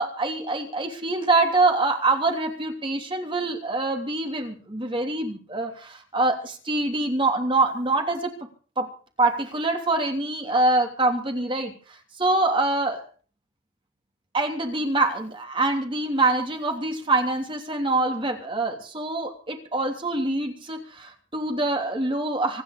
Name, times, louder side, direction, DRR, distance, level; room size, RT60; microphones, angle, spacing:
voice 1, 0.0-8.3 8.8-8.9 9.2-11.7 12.2-13.0 14.3-22.6, right 2 dB, 25° right, 3 dB, 3.1 m, -25 dB
25.0 x 10.0 x 5.1 m, 0.41 s
head